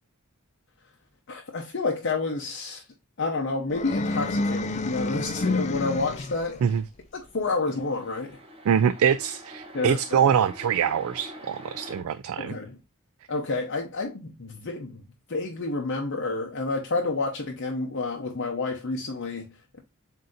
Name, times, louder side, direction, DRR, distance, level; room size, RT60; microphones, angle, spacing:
voice 1, 1.3-2.8 3.2-6.6 7.1-8.4 9.7-10.2 12.4-12.8 13.3-15.0 15.3-19.8, left 3 dB, 55° left, 0.8 m, -29 dB
sound 1, 3.7-6.6, left 2 dB, 30° left, 0.4 m, -29 dB
sound 2, 7.3-12.0, equal, 25° right, 1.0 m, -45 dB
voice 2, 8.7-12.6, right 8 dB, 65° right, 0.3 m, -24 dB
7.6 x 2.8 x 2.4 m
head